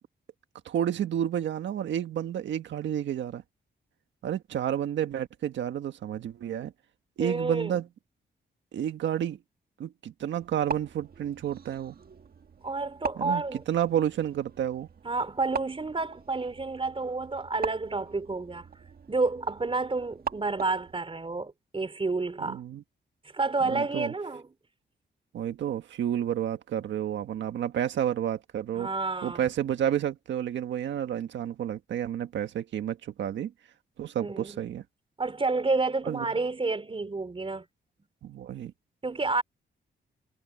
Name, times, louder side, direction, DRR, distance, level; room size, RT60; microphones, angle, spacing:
voice 1, 0.6-3.4 4.2-6.7 7.2-7.9 8.7-9.4 9.8-11.9 13.2-14.9 22.4-22.8 23.6-24.1 25.3-28.9 29.2-33.5 34.0-34.8 36.0-36.3 38.2-38.7, right 10 dB, 90° right, 1.6 m, -30 dB
voice 2, 7.2-7.8 12.6-13.6 15.0-18.7 19.1-22.6 23.3-24.5 28.7-29.5 34.2-34.7 35.2-37.6 39.0-39.4, right 3 dB, 30° right, 3.8 m, -30 dB
sound 1, 10.4-21.0, right 6 dB, 55° right, 1.6 m, -41 dB
cardioid pair, 80°, 19 cm